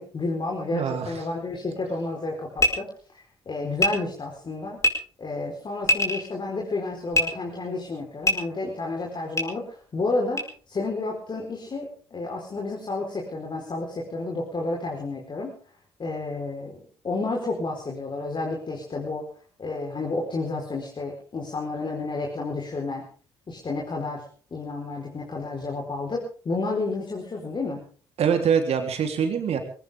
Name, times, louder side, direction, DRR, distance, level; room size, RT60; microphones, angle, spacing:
voice 1, 0.0-2.9 3.1-4.8 5.2-15.5 16.0-16.8 17.0-19.2 19.6-23.1 23.5-24.2 24.5-27.8, left 3 dB, 40° left, -1 dB, 4.6 m, -31 dB
voice 2, 0.7-1.1 28.2-29.6, right 7 dB, 60° right, 4 dB, 3.7 m, -24 dB
sound 1, 2.6-2.7 3.8-3.9 4.8-4.9 5.8-6.2 7.1-7.2 8.2-8.3 9.4-9.5 10.4-10.5, left 1 dB, 25° left, 5.2 m, -21 dB
21.5 x 18.0 x 3.7 m, 0.42 s
hypercardioid pair, 45°, 12 cm